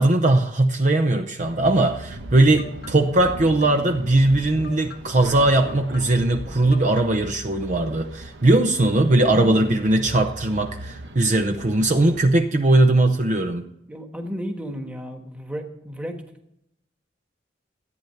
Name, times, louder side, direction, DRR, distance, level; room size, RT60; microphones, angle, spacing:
voice 1, 0.0-13.6, right 2 dB, 40° right, 6 dB, 0.7 m, -19 dB
sound 1, 1.4-12.3, right 1 dB, 80° right, 1.2 m, -40 dB
sound 2, 2.1-7.3, left 1 dB, 60° left, 1.1 m, -40 dB
voice 2, 9.3-9.8 13.9-16.2, equal, 5° right, 4 dB, 1.4 m, -32 dB
14.0 x 9.3 x 5.7 m, 0.80 s
head